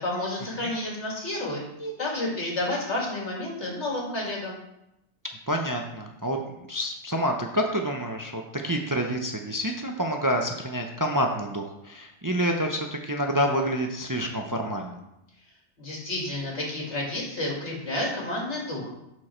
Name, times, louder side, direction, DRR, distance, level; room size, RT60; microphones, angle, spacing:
voice 1, 0.0-4.6 15.8-18.9, left 1 dB, 75° left, -2 dB, 2.5 m, -30 dB
voice 2, 5.5-6.4 6.7-15.0, equal, 20° right, 2 dB, 0.6 m, -28 dB
11.5 x 4.6 x 4.3 m, 0.88 s
omnidirectional pair, 1.2 m